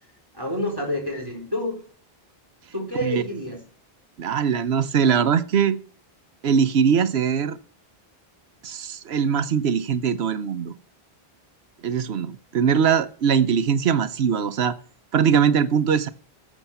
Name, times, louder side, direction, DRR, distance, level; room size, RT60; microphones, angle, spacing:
voice 1, 0.3-1.8 2.7-3.6, left 1 dB, 20° right, 4.3 m, -28 dB
voice 2, 4.2-5.8 6.4-7.6 8.6-10.7 11.8-14.8 15.1-16.1, right 7 dB, 85° right, 1.1 m, -21 dB
14.5 x 7.1 x 7.1 m
omnidirectional pair, 1.0 m